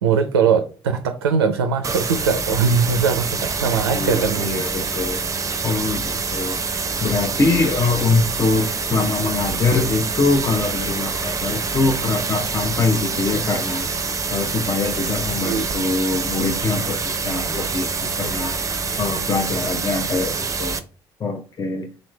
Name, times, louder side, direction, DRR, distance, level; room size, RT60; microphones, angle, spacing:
voice 1, 0.0-4.5 15.4-15.6, right 6 dB, 80° right, 7 dB, 0.4 m, -20 dB
sound 1, 1.8-20.8, right 4 dB, 25° right, 0.6 m, -26 dB
voice 2, 3.9-5.2 5.6-6.6 7.0-13.9 14.3-18.6 19.0-20.8 21.2-21.9, left 3 dB, 30° left, 4 dB, 0.7 m, -23 dB
3.9 x 3.1 x 3.1 m, 0.36 s
figure-of-eight pair, 50°, 13 cm